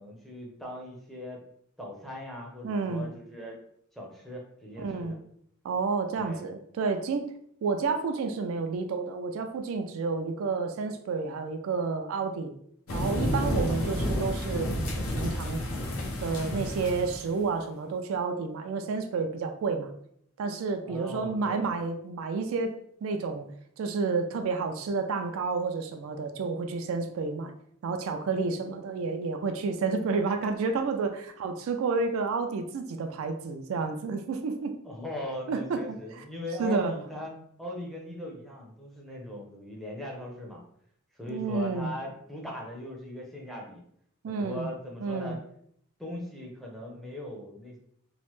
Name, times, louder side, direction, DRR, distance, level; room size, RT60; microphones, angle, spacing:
voice 1, 0.0-1.4 1.8-3.6 4.0-5.2 6.2-6.5 20.8-21.7 34.8-37.3 37.6-40.6 41.2-43.8 44.3-45.4 46.0-47.8, left 1 dB, ahead, -2 dB, 0.6 m, -39 dB
voice 2, 2.6-3.1 4.8-5.1 5.6-7.3 7.6-12.5 12.9-15.6 16.2-19.9 20.4-22.7 23.0-23.5 23.8-27.5 27.8-34.8 35.5-36.2 36.6-36.9 41.3-41.9 44.2-44.7 45.0-45.4, right 4 dB, 70° right, 6 dB, 0.3 m, -30 dB
sound 1, 12.9-17.3, left 1 dB, 70° left, 0.7 m, -30 dB
3.0 x 2.0 x 3.0 m, 0.67 s
head